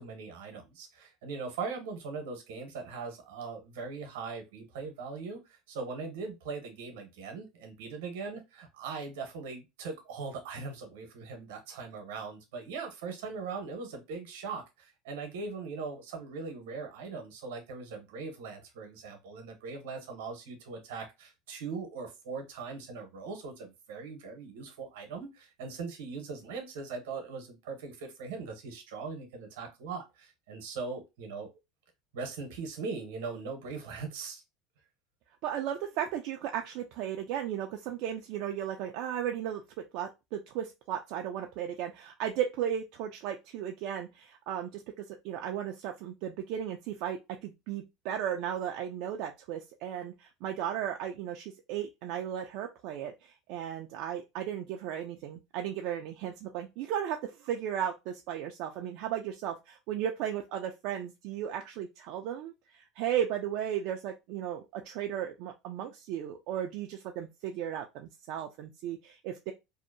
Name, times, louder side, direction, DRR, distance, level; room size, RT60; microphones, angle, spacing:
voice 1, 0.0-31.5 32.1-34.4, right 4 dB, 85° right, 4 dB, 0.9 m, -40 dB
voice 2, 35.4-39.6 39.9-69.5, right 10 dB, 65° right, 3 dB, 0.3 m, -35 dB
2.6 x 2.0 x 2.5 m, 0.24 s
supercardioid pair, 110°, 0 cm